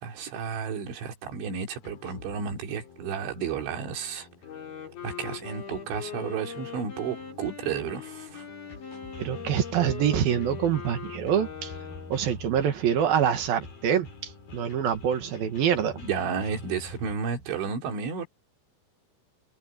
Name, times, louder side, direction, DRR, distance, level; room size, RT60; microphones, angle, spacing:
voice 1, 0.0-4.3 5.0-8.5 16.0-18.3, right 6 dB, 90° right, 5.5 m, -32 dB
sound 1, 1.7-17.2, left 3 dB, 50° left, 7.5 m, -47 dB
Wind instrument woodwind instrument, 4.3-12.3, left 7 dB, 80° left, 8.3 m, -41 dB
voice 2, 9.2-11.7 12.1-16.0, right 9 dB, 60° right, 3.1 m, -25 dB
omnidirectional pair, 5.2 m